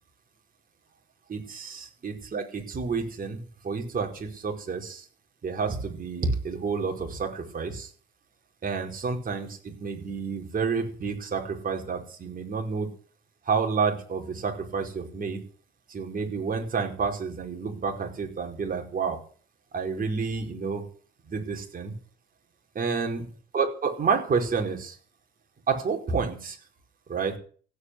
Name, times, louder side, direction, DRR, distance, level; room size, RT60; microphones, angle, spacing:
voice 1, 1.3-5.1 5.4-7.9 8.6-12.9 13.4-15.4 15.9-19.2 19.7-20.8 21.3-21.9 22.7-23.3 23.5-25.0 25.7-26.6 27.1-27.4, right 5 dB, 45° right, 3 dB, 4.9 m, -29 dB
16.0 x 8.6 x 8.1 m, 0.42 s
cardioid pair, 90°, 20 cm